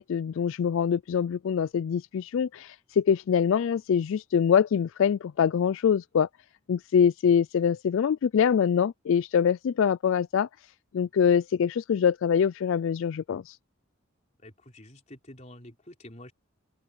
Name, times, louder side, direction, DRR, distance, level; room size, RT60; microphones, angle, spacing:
voice 1, 0.0-6.3 6.7-10.5 10.9-13.6, left 7 dB, 70° left, 0.3 m, -24 dB
voice 2, 14.4-16.3, left 1 dB, 35° left, 4.0 m, -48 dB
open air
head